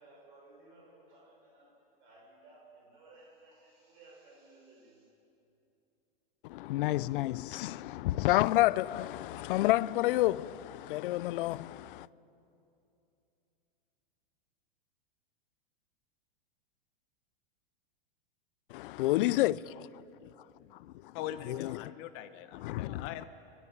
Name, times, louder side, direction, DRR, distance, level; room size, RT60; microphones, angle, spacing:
voice 1, 0.0-1.7 2.0-5.1, right 2 dB, 60° right, 5.4 m, -58 dB
voice 2, 6.4-12.1 18.7-19.9 20.8-21.1 21.5-21.9 22.5-23.2, left 16 dB, 60° left, 0.5 m, -30 dB
voice 3, 21.1-23.3, left 11 dB, 45° left, 1.2 m, -42 dB
21.5 x 12.5 x 9.8 m
hypercardioid pair, 125°, 30 cm